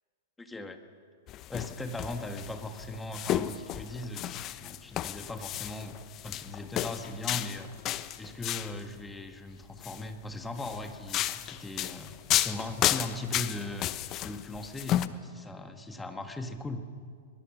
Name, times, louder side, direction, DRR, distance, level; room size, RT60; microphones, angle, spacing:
voice 1, 0.4-0.8 1.5-7.7 8.2-12.2 12.4-13.9 14.2-16.8, left 2 dB, 10° left, 6 dB, 1.7 m, -39 dB
sound 1, 1.3-8.8 9.6-10.0 10.6-15.1, left 13 dB, 35° left, 0.9 m, -33 dB
23.0 x 21.0 x 6.2 m, 2.1 s
hypercardioid pair, 115°, 0 cm